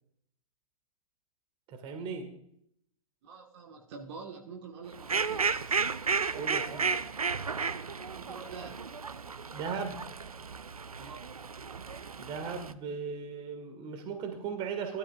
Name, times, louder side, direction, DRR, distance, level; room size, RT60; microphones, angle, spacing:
voice 1, 1.7-2.3 6.3-7.0 9.5-10.0 12.2-15.0, right 6 dB, 30° right, 7 dB, 1.9 m, -37 dB
voice 2, 3.2-5.9 7.9-8.9 11.0-11.3, right 5 dB, 50° right, 2 dB, 1.9 m, -46 dB
Fowl, 4.9-12.7, right 5 dB, 85° right, 0.6 m, -33 dB
18.5 x 12.5 x 2.5 m, 0.70 s
figure-of-eight pair, 110°, 18 cm